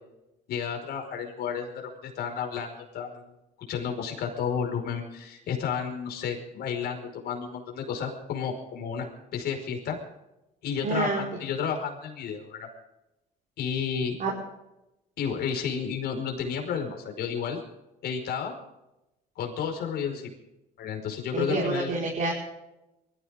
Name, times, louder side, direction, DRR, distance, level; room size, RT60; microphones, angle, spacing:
voice 1, 0.5-1.7 2.0-3.2 3.7-9.1 9.3-10.0 10.6-12.7 13.6-14.2 15.2-17.6 18.0-18.5 19.3-20.3 20.8-21.9, left 7 dB, 70° left, 3 dB, 5.1 m, -31 dB
voice 2, 10.8-11.3 14.2-14.3 21.3-22.3, right 3 dB, 50° right, -3 dB, 4.9 m, -27 dB
23.5 x 15.0 x 3.7 m, 0.92 s
cardioid pair, 110°, 17 cm